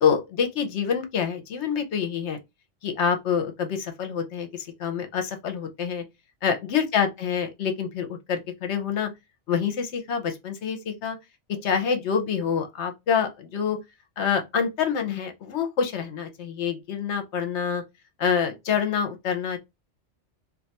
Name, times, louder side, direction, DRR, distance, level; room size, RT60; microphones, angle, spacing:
voice 1, 0.0-2.4 2.8-6.0 6.4-9.1 9.5-11.2 11.5-13.8 14.2-17.8 18.2-19.6, left 7 dB, 70° left, 1.0 m, -26 dB
2.5 x 2.3 x 4.0 m
omnidirectional pair, 1.2 m